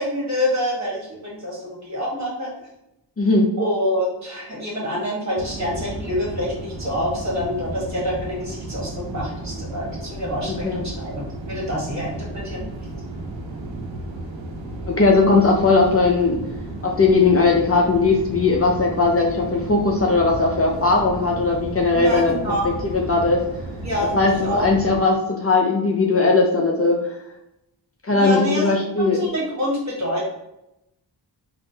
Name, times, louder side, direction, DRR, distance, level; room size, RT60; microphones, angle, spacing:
voice 1, 0.0-2.5 3.6-12.6 21.9-22.8 23.8-24.6 28.1-28.7 29.0-30.2, left 1 dB, 40° right, -4 dB, 1.3 m, -26 dB
voice 2, 3.2-3.5 10.6-10.8 14.9-16.4 16.8-22.3 22.8-23.4 24.1-24.3 24.6-27.1 28.0-29.2, left 3 dB, 35° left, -1 dB, 0.4 m, -18 dB
sound 1, 5.3-25.0, right 2 dB, 85° right, 0.6 m, -33 dB
3.5 x 2.0 x 2.7 m, 0.86 s
cardioid pair, 50°, 44 cm